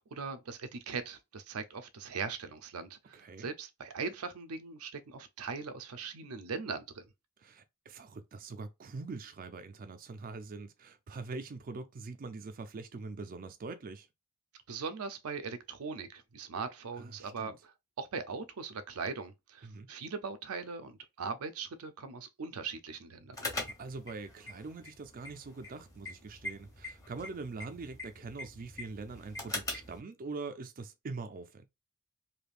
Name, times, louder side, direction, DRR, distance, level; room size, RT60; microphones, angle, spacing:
voice 1, 0.0-7.1 14.7-23.4, right 5 dB, 85° right, 0.6 m, -40 dB
voice 2, 3.1-3.5 7.4-14.1 17.0-17.6 19.6-19.9 23.6-31.7, right 3 dB, 40° right, 0.4 m, -43 dB
sound 1, 23.3-30.0, left 2 dB, 15° left, 1.0 m, -43 dB
3.3 x 2.7 x 2.4 m
head